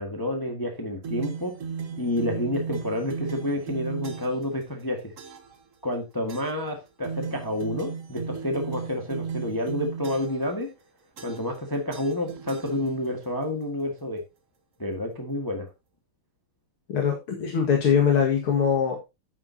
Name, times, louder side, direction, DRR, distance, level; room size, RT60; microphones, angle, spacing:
voice 1, 0.0-1.5 2.0-5.1 5.8-10.7 11.2-14.2 14.8-15.7, left 1 dB, 10° left, 3 dB, 1.5 m, -29 dB
sound 1, 1.0-4.5 5.2-5.6 6.3-6.7 7.0-10.5 11.2-11.6 11.9-13.2, right 6 dB, 45° right, 1.3 m, -36 dB
voice 2, 16.9-19.0, left 7 dB, 75° left, 1 dB, 2.7 m, -22 dB
10.5 x 9.5 x 2.8 m, 0.24 s
omnidirectional pair, 2.3 m